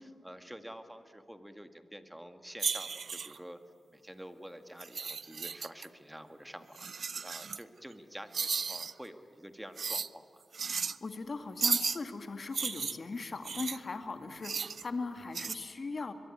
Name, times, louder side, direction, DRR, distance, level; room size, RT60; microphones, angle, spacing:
voice 1, 0.2-3.6 3.9-10.4, equal, 5° right, 8 dB, 1.8 m, -48 dB
sound 1, 2.6-3.4 4.8-5.9 6.8-7.6 8.3-8.9 9.8-10.1 10.5-11.0 11.6-12.0 12.5-13.8 14.4-14.8 15.3-15.5, right 5 dB, 65° right, 0.5 m, -34 dB
voice 2, 10.7-16.1, left 3 dB, 50° left, 7 dB, 2.1 m, -39 dB
23.0 x 22.5 x 9.9 m, 2.6 s
cardioid pair, 80°, 0 cm